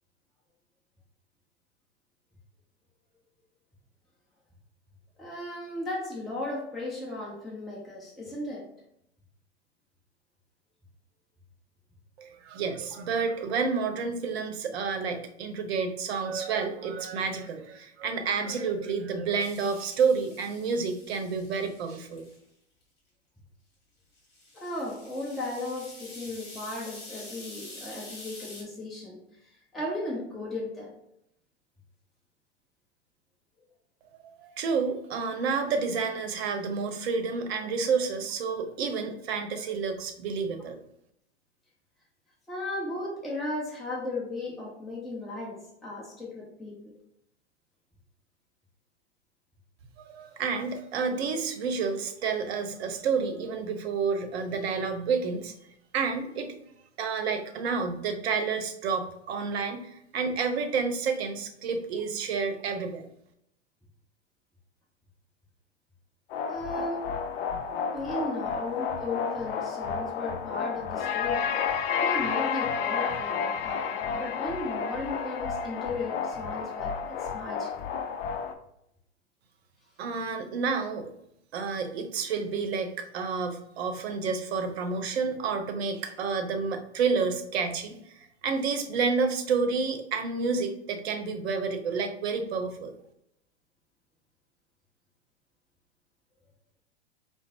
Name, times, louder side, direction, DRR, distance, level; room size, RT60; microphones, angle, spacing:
voice 1, 5.2-8.7 24.5-30.9 42.5-46.9 54.3-54.4 66.5-67.1 67.9-71.5 72.0-77.9, left 2 dB, ahead, -4 dB, 0.7 m, -36 dB
voice 2, 12.2-22.2 34.4-40.8 50.1-55.5 55.9-56.5 57.0-63.1 80.0-81.1 81.5-92.9, right 5 dB, 60° right, 7 dB, 0.7 m, -30 dB
sound 1, 19.4-22.4 24.2-28.6, left 2 dB, 30° left, 1.5 m, -47 dB
sound 2, 66.3-78.5, left 6 dB, 55° left, 0.5 m, -31 dB
4.9 x 2.0 x 3.0 m, 0.76 s
hypercardioid pair, 105°, 35 cm